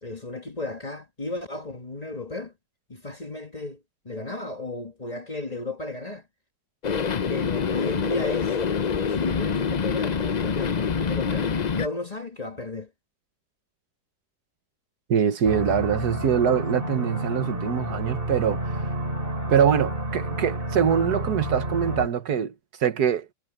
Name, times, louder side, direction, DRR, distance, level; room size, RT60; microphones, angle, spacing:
voice 1, 0.0-2.5 2.9-6.3 7.3-8.5 9.1-12.9, left 2 dB, 25° left, 1.5 m, -34 dB
sound 1, 6.8-11.9, left 6 dB, 70° left, 0.4 m, -26 dB
voice 2, 15.1-18.9 19.5-22.5 22.8-23.3, right 8 dB, 65° right, 1.6 m, -23 dB
sound 2, 15.4-22.1, right 1 dB, 30° right, 2.9 m, -30 dB
omnidirectional pair, 1.8 m